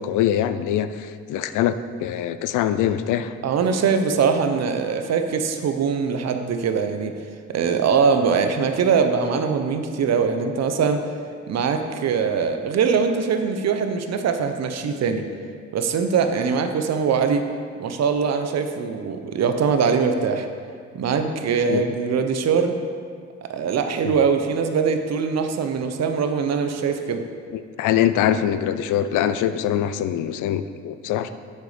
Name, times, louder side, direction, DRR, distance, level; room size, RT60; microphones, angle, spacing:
voice 1, 0.0-3.3 21.7-21.8 24.0-24.1 27.5-31.3, left 10 dB, 85° left, 11 dB, 0.5 m, -23 dB
voice 2, 3.4-7.1 7.5-11.0 11.5-15.3 15.7-17.4 17.8-20.5 20.9-22.8 23.4-27.2, right 6 dB, 60° right, 7 dB, 0.8 m, -22 dB
8.0 x 6.4 x 5.1 m, 2.1 s
cardioid pair, 90°, 30 cm